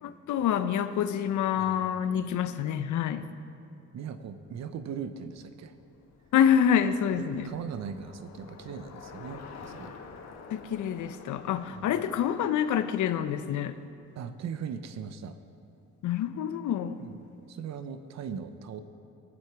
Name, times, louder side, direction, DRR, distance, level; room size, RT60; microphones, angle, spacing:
voice 1, 0.0-3.3 6.3-7.5 10.5-13.7 16.0-17.0, left 9 dB, 75° left, 10 dB, 0.8 m, -27 dB
voice 2, 1.6-2.1 2.6-2.8 3.9-5.7 7.1-9.9 11.7-12.0 14.1-15.4 17.0-17.2 17.5-18.8, right 7 dB, 60° right, 10 dB, 0.8 m, -39 dB
Bicycle, 5.3-13.6, left 5 dB, 60° left, 1.5 m, -49 dB
22.5 x 7.7 x 4.7 m, 2.6 s
cardioid pair, 90°, 30 cm